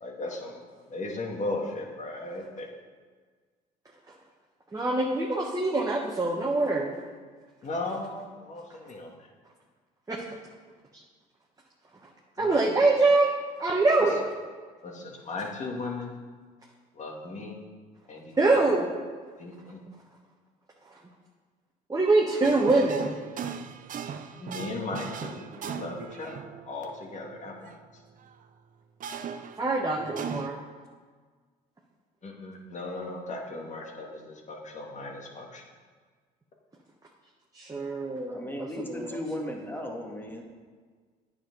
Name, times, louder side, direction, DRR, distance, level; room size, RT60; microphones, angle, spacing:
voice 1, 0.0-2.7 7.6-9.3 12.4-12.8 14.8-16.1 16.9-17.6 18.1-18.6 19.4-19.8 24.4-26.3 26.6-28.0 32.2-35.6, left 2 dB, 40° left, 1 dB, 2.1 m, -37 dB
voice 2, 4.7-6.9 10.1-10.2 10.9-11.0 12.0-12.1 12.4-13.3 13.6-14.2 18.4-18.9 20.9-21.0 21.9-23.2 29.6-30.6 37.5-39.1, right 3 dB, 20° right, -2 dB, 1.3 m, -24 dB
sound 1, 22.4-27.8 28.2-28.3 29.0-30.5, right 7 dB, 45° right, 0.7 m, -39 dB
voice 3, 38.3-40.4, left 1 dB, 10° left, 1 dB, 2.0 m, -36 dB
9.2 x 7.2 x 5.4 m, 1.5 s
supercardioid pair, 75°, 19 cm